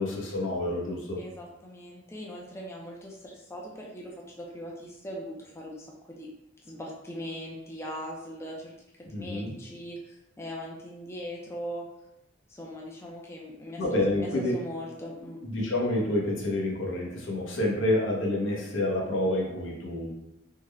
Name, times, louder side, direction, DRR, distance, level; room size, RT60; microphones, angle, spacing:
voice 1, 0.0-1.2 9.1-9.5 13.8-14.6 15.4-20.1, left 1 dB, 80° left, -2 dB, 0.8 m, -28 dB
voice 2, 1.2-6.3 6.6-8.7 9.1-11.9 12.5-15.4, equal, 15° left, -2 dB, 0.4 m, -40 dB
3.6 x 2.1 x 3.3 m, 0.87 s
head